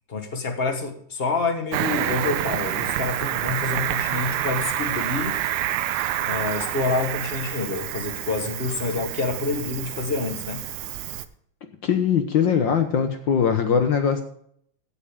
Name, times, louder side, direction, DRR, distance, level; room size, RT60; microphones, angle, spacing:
voice 1, 0.1-5.4 6.2-10.6, left 3 dB, 50° left, 6 dB, 0.7 m, -27 dB
Cricket, 1.7-11.2, right 13 dB, 85° right, 2.1 m, -28 dB
voice 2, 11.8-14.2, left 7 dB, 65° left, 7 dB, 1.2 m, -21 dB
16.0 x 8.8 x 3.7 m, 0.66 s
omnidirectional pair, 3.4 m